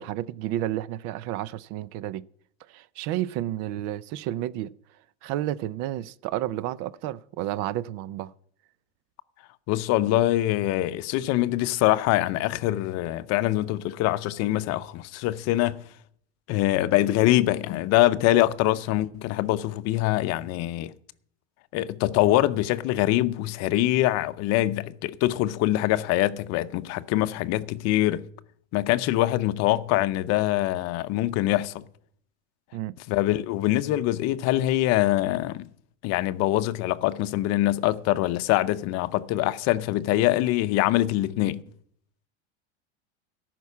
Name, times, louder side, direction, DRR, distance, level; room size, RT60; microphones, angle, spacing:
voice 1, 0.0-2.2 2.7-4.7 5.2-8.3 32.7-33.0, right 13 dB, 50° right, 0.5 m, -31 dB
voice 2, 9.7-15.8 16.5-20.9 21.7-28.3 28.7-31.8 33.1-35.7 36.0-41.6, left 15 dB, 45° left, 0.7 m, -24 dB
14.0 x 6.0 x 8.3 m
supercardioid pair, 120°, 35 cm